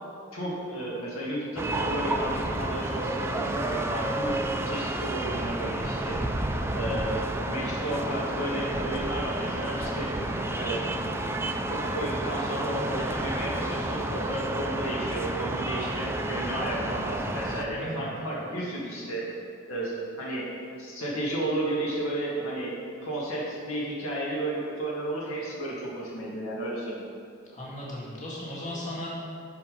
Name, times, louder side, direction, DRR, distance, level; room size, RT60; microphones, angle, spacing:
voice 1, 0.3-6.2 6.7-7.2 7.5-10.1 10.5-10.9 11.7-19.3 19.7-20.5 20.8-27.0, right 1 dB, 80° left, -5 dB, 2.3 m, -32 dB
sound 1, 1.6-17.6, right 1 dB, 10° right, 0.5 m, -30 dB
voice 2, 17.7-18.2 27.5-29.1, left 1 dB, 35° left, -6 dB, 2.1 m, -37 dB
10.5 x 6.0 x 5.3 m, 2.3 s
head